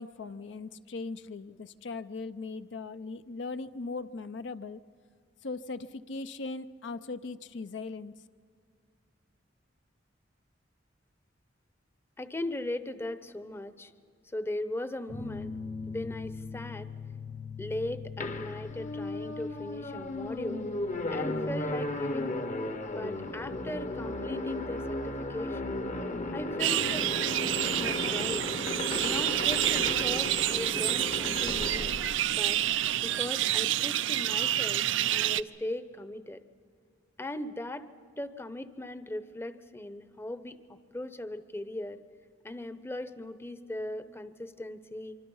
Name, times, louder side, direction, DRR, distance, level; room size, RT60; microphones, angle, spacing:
voice 1, 0.0-4.8 5.4-8.1, left 3 dB, 70° left, 11 dB, 0.6 m, -39 dB
voice 2, 12.2-13.9 14.3-15.5 15.9-16.9 17.6-20.7 21.1-22.4 22.9-25.8 26.3-27.1 27.7-28.5 29.0-32.0 32.3-32.6 33.0-36.4 37.2-37.9 38.2-40.6 40.9-42.0 42.4-45.2, left 1 dB, 15° left, 12 dB, 0.7 m, -38 dB
sound 1, 15.1-26.3, left 5 dB, 85° left, 2.6 m, -44 dB
sound 2, 18.2-32.9, left 2 dB, 40° left, 0.9 m, -35 dB
sound 3, 26.6-35.4, right 12 dB, 80° right, 0.5 m, -28 dB
25.0 x 25.0 x 5.5 m, 2.1 s
head